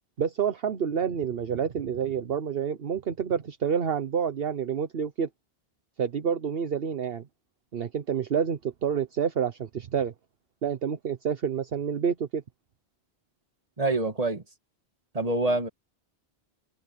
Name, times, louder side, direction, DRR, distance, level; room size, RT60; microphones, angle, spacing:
voice 1, 0.2-5.3 6.0-7.3 7.7-10.1 10.6-12.4, right 7 dB, 60° right, 1.1 m, -28 dB
voice 2, 13.8-14.4 15.1-15.7, right 2 dB, 35° right, 2.1 m, -26 dB
omnidirectional pair, 1.1 m